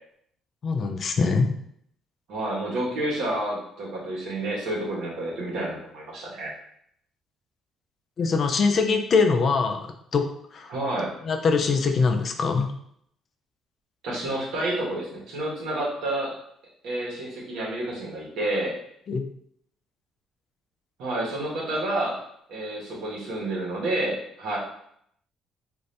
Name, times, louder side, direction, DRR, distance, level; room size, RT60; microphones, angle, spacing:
voice 1, 0.6-1.6 8.2-10.3 10.5-10.7 11.2-12.7 19.1-19.2, left 4 dB, 35° left, 5 dB, 0.3 m, -23 dB
voice 2, 2.3-6.5 10.7-11.1 14.0-16.3 16.8-18.7 21.0-22.2 22.5-24.6, right 1 dB, 80° right, -4 dB, 1.1 m, -29 dB
2.6 x 2.5 x 3.2 m, 0.70 s
cardioid pair, 170°, 0 cm